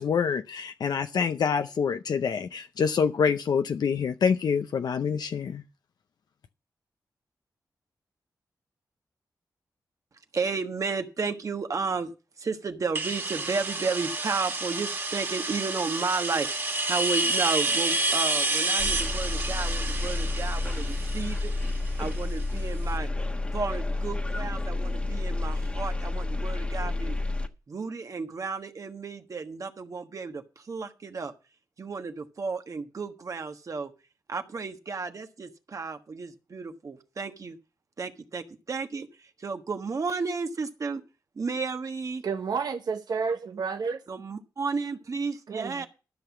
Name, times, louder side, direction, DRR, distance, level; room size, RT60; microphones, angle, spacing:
voice 1, 0.0-5.6, left 6 dB, 75° left, 0.6 m, -26 dB
voice 2, 10.3-21.5 22.0-23.1 23.5-27.2 27.7-31.3 31.8-33.9 34.3-37.6 38.0-41.0 41.3-42.2 44.1-45.9, right 4 dB, 50° right, 1.3 m, -33 dB
sound 1, 12.9-22.6, right 2 dB, 35° right, 2.2 m, -29 dB
sound 2, 18.8-27.5, left 2 dB, 15° left, 1.2 m, -30 dB
voice 3, 42.2-44.0 45.5-45.9, right 5 dB, 70° right, 1.1 m, -30 dB
13.0 x 5.7 x 7.1 m
wide cardioid pair, 90°, 7 cm